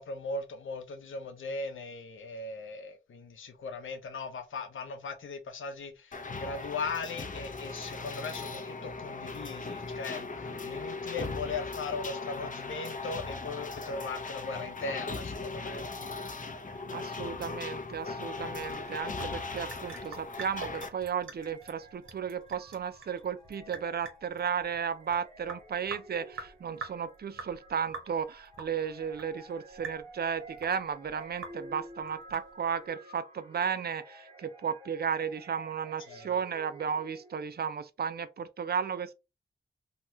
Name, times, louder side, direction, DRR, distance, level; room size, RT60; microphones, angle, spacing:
voice 1, 0.0-15.8 36.1-36.4, left 3 dB, 80° left, 0.7 m, -38 dB
sound 1, 6.1-20.9, left 3 dB, 40° left, 0.6 m, -38 dB
voice 2, 16.9-39.1, right 7 dB, 50° right, 0.4 m, -34 dB
Sink (filling or washing) / Drip, 18.4-32.9, right 4 dB, 85° right, 0.8 m, -46 dB
sound 2, 21.3-37.6, right 1 dB, 30° right, 1.2 m, -52 dB
2.8 x 2.2 x 3.0 m
cardioid pair, 55°, 20 cm